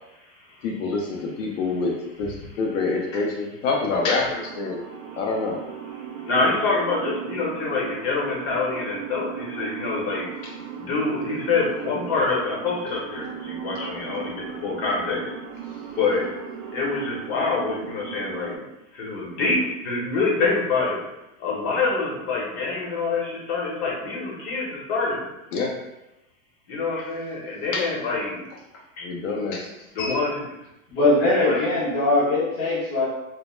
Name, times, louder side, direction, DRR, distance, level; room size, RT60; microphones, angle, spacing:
voice 1, 0.6-4.8 5.2-5.6 25.5-25.8 27.7-27.9 29.0-30.2, left 3 dB, 70° left, 0 dB, 0.5 m, -26 dB
sound 1, 4.3-18.6, right 8 dB, 80° right, 0.5 m, -37 dB
voice 2, 6.3-10.3 10.8-15.3 16.0-16.3 16.7-18.7 18.9-21.0 21.4-25.2 26.7-28.4 29.0-29.1 29.9-30.5 31.2-31.6, left 3 dB, 50° left, -4 dB, 0.9 m, -26 dB
voice 3, 30.9-33.1, left 2 dB, 15° left, -10 dB, 0.4 m, -21 dB
2.2 x 2.1 x 3.0 m, 0.94 s
supercardioid pair, 155°, 41 cm